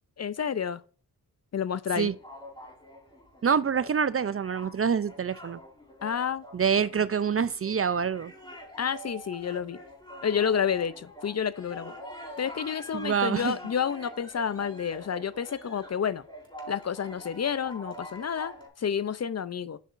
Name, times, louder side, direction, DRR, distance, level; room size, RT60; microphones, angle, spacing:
voice 1, 0.2-0.8 1.5-2.1 6.0-6.4 8.8-9.8 10.2-11.9 12.4-16.2 16.7-19.8, left 7 dB, 45° left, 0.5 m, -30 dB
sound 1, 2.0-18.7, equal, 15° left, 3.5 m, -46 dB
voice 2, 3.4-5.6 6.5-8.3 12.9-13.5, right 7 dB, 40° right, 0.4 m, -26 dB
8.3 x 5.8 x 2.5 m
cardioid pair, 65°, 38 cm